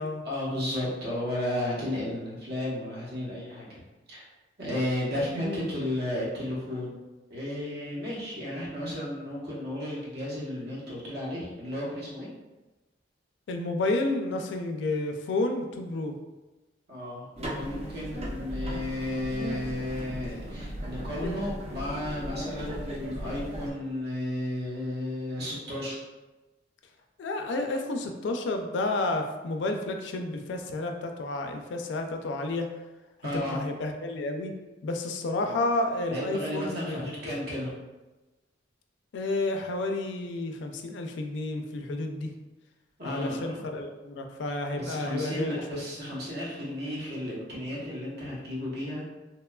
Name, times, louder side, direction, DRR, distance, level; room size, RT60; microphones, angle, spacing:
voice 1, 0.2-3.8 4.1-4.3 4.6-7.0 7.3-12.3 16.9-26.0 33.2-33.6 36.1-37.7 43.0-43.7 44.8-49.1, left 1 dB, 60° right, -6 dB, 0.9 m, -33 dB
voice 2, 5.3-5.7 13.5-16.1 21.2-21.4 27.2-32.7 33.3-34.5 34.8-37.0 39.1-42.3 43.0-45.8, left 2 dB, 70° left, 4 dB, 0.3 m, -31 dB
sound 1, 17.4-23.7, right 1 dB, 35° right, 0.5 m, -37 dB
2.8 x 2.2 x 2.2 m, 1.1 s
head